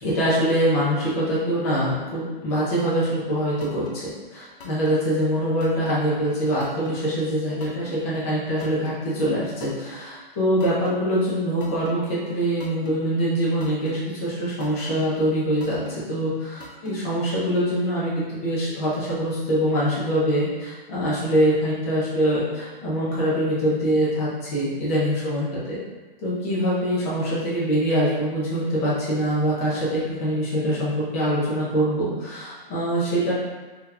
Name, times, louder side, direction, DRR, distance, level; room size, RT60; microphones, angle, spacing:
voice 1, 0.0-15.8 16.1-25.8 26.2-33.3, equal, 15° left, -8 dB, 0.5 m, -24 dB
sound 1, 3.6-3.9 4.6-5.0 5.6-5.9 6.6-7.0 7.6-8.0 8.6-9.0 9.6-9.9 10.6-11.0 11.6-11.9 12.6-13.0 13.6-14.0 14.6-15.0 15.6-15.9 16.6-17.0, left 1 dB, 60° left, 0.7 m, -40 dB
2.8 x 2.2 x 3.8 m, 1.2 s
hypercardioid pair, 170°, 30 cm